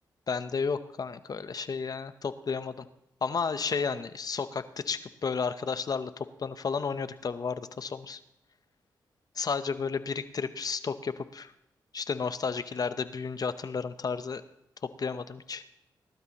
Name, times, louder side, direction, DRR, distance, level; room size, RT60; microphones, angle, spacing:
voice 1, 0.3-2.9 3.2-8.2 9.4-11.5 11.9-14.4 15.0-15.6, left 5 dB, 50° left, 12 dB, 0.8 m, -32 dB
19.5 x 12.5 x 3.0 m, 0.80 s
cardioid pair, 55°, 8 cm